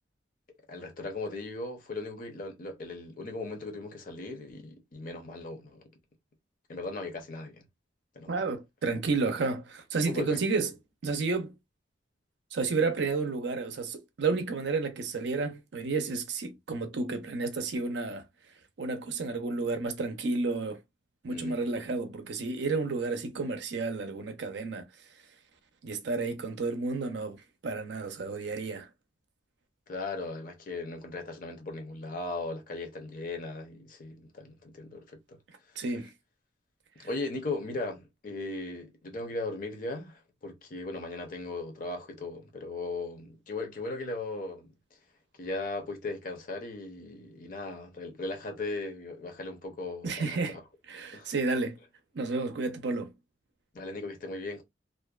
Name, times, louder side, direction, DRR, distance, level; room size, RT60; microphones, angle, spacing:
voice 1, 0.7-5.8 6.7-7.6 8.1-8.4 10.0-10.7 21.3-21.6 29.9-35.4 35.7-35.8 37.0-44.7 45.4-50.6 51.1-51.3 53.7-54.6, left 2 dB, 45° left, 0.6 m, -38 dB
voice 2, 8.3-10.7 11.0-11.5 12.5-18.2 18.8-20.8 21.2-24.8 25.8-28.9 35.8-36.1 37.0-37.1 50.0-50.6 50.9-51.8 52.1-53.1, right 3 dB, 65° right, 0.5 m, -31 dB
2.5 x 2.1 x 2.3 m
head